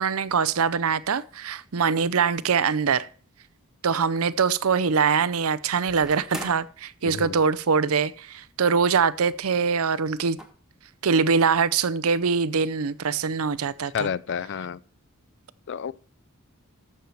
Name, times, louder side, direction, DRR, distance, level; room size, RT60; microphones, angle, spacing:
voice 1, 0.0-3.1 3.8-10.4 11.0-14.1, right 5 dB, 70° right, 0.6 m, -23 dB
sound 1, 3.4-3.5 5.7-6.7 7.7-7.8 8.0-8.1 9.2-9.5 9.8-9.9 10.4-10.5, right 1 dB, 5° right, 1.6 m, -40 dB
voice 2, 7.0-7.4 13.9-14.8 15.7-15.9, left 7 dB, 55° left, 0.4 m, -30 dB
13.5 x 6.6 x 4.5 m
head